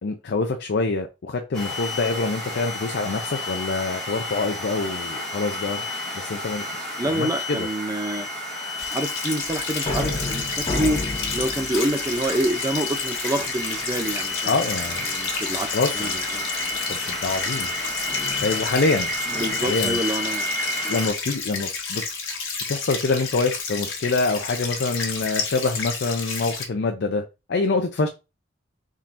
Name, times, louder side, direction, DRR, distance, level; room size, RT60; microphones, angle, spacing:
voice 1, 0.0-5.8 6.1-6.7 7.1-7.7 14.5-15.0 15.7-16.2 16.9-17.7 18.4-19.1 19.6-20.0 20.9-22.0 22.7-27.2 27.5-28.1, left 3 dB, 60° left, 0.5 m, -25 dB
sound 1, 1.5-21.1, left 2 dB, 5° left, 1.4 m, -31 dB
voice 2, 7.0-8.3 8.9-11.0 11.3-14.5 15.1-15.7 15.9-16.5 19.3-20.5 20.8-21.0, right 1 dB, 20° right, 0.5 m, -27 dB
sound 2, 8.8-26.6, left 5 dB, 85° left, 1.2 m, -31 dB
sound 3, 9.4-13.2 13.7-14.3 14.7-15.1 16.6-20.0, left 2 dB, 25° left, 1.1 m, -33 dB
4.2 x 3.7 x 2.5 m
head